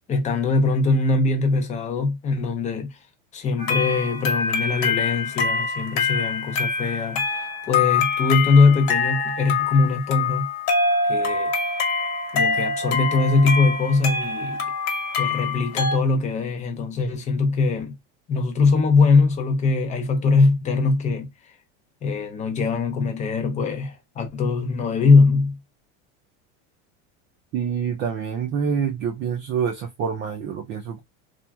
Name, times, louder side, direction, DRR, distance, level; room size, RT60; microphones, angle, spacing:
voice 1, 0.1-3.0 3.3-10.5 11.1-11.5 12.3-14.6 15.2-18.0 18.3-21.3 22.0-25.6, left 4 dB, 20° left, 0.5 m, -21 dB
sound 1, 3.6-16.0, left 4 dB, 65° left, 1.2 m, -25 dB
voice 2, 27.5-31.0, right 7 dB, 35° right, 0.5 m, -26 dB
2.9 x 2.4 x 2.3 m
supercardioid pair, 145°, 35 cm